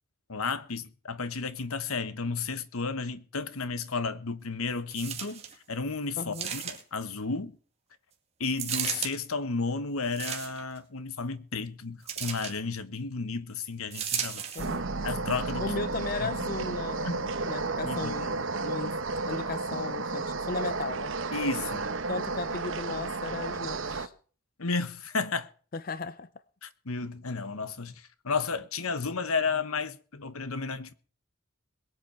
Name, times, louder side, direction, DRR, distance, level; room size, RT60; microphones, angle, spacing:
voice 1, 0.3-5.4 5.7-7.6 8.4-14.4 15.0-15.7 16.2-16.3 17.0-17.2 17.8-18.3 21.3-21.9 24.6-25.5 26.6-30.9, left 4 dB, 80° left, 1.2 m, -33 dB
sound 1, 4.9-5.6 6.3-7.0 8.6-9.1 10.0-10.8 12.1-12.6 13.9-14.8 15.5-15.6, right 8 dB, 30° right, 2.2 m, -34 dB
voice 2, 6.2-6.5 14.5-14.8 15.6-18.9 19.3-21.1 22.1-24.1 25.7-26.3, left 4 dB, 40° left, 0.5 m, -36 dB
sound 2, 14.6-24.1, right 3 dB, 60° right, 1.0 m, -32 dB
22.0 x 8.1 x 4.5 m
head